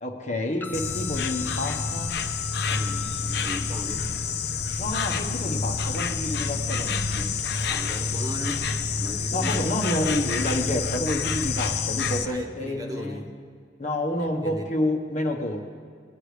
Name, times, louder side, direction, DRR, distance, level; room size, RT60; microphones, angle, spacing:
voice 1, 0.0-2.1 4.8-7.3 9.3-13.2 13.8-15.6, left 1 dB, 45° left, 3 dB, 1.2 m, -29 dB
sound 1, 0.6-8.6, left 6 dB, 10° left, 0.6 m, -46 dB
Insect, 0.7-12.3, left 5 dB, 65° left, 0.6 m, -28 dB
voice 2, 2.7-4.1 7.6-9.6 10.6-10.8 12.2-13.3 14.2-14.7, equal, 20° right, 2 dB, 1.0 m, -37 dB
20.0 x 9.8 x 3.3 m, 2.1 s
head